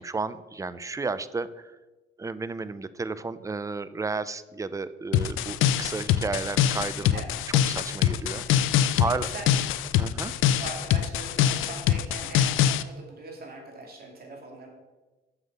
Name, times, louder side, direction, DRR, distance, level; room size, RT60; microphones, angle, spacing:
voice 1, 0.0-1.7 2.2-7.2 7.7-9.3 10.0-10.4, right 4 dB, 15° right, 15 dB, 0.4 m, -33 dB
sound 1, 5.1-12.8, left 10 dB, 90° left, 0.5 m, -24 dB
voice 2, 9.0-9.5 10.6-14.7, right 3 dB, 50° right, 1 dB, 2.7 m, -41 dB
7.8 x 7.0 x 5.4 m, 1.2 s
cardioid pair, 90°, 20 cm